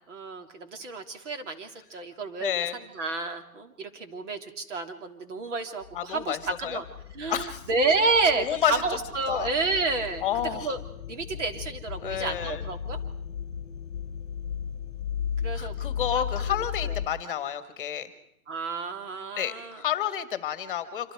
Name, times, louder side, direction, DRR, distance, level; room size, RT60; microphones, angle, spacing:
voice 1, 0.1-6.8 7.1-10.3 10.6-10.8 11.1-13.0 15.4-15.7 16.1-16.5 16.8-16.9 18.5-19.8, right 3 dB, 55° right, 5 dB, 3.3 m, -30 dB
voice 2, 2.4-2.8 5.9-6.8 7.3-7.6 8.4-8.8 9.3-9.5 10.2-10.7 12.0-12.6 15.5-18.1 19.4-21.1, left 10 dB, 35° left, 11 dB, 1.6 m, -30 dB
sound 1, 5.8-17.1, left 8 dB, 55° left, 1.1 m, -36 dB
26.5 x 26.0 x 4.8 m, 0.75 s
hypercardioid pair, 170°, 44 cm